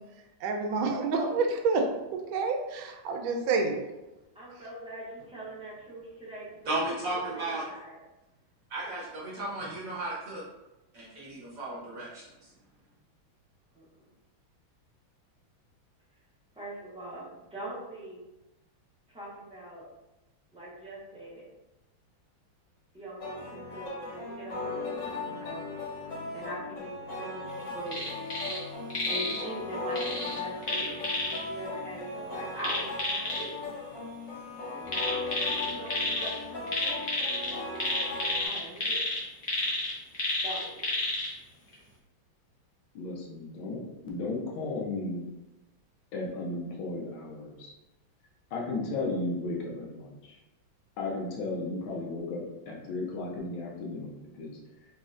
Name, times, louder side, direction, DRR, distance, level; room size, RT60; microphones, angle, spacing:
voice 1, 0.4-3.8, right 4 dB, 75° right, 3 dB, 1.3 m, -28 dB
voice 2, 4.3-6.5 6.8-7.2 7.6-8.0 13.7-13.9 16.5-18.2 19.1-19.8 20.5-21.4 22.9-25.8 26.1-28.1 29.1-33.6 34.7-37.0 38.4-39.1 40.4-40.9, right 1 dB, 5° right, -9 dB, 0.5 m, -42 dB
voice 3, 6.7-7.6 8.7-10.4 10.9-12.2, right 2 dB, 55° right, -6 dB, 1.0 m, -34 dB
sound 1, 23.2-38.5, left 2 dB, 60° left, 2.1 m, -37 dB
sound 2, 27.9-28.6 28.9-29.4 30.0-31.4 32.6-33.4 34.9-36.3 36.7-41.3 41.7-41.8, left 2 dB, 45° left, 0.7 m, -30 dB
voice 4, 42.9-45.3 46.1-47.7 48.5-50.3 51.0-54.6, left 2 dB, 80° left, -2 dB, 1.5 m, -35 dB
4.1 x 3.1 x 2.4 m, 0.99 s
omnidirectional pair, 2.2 m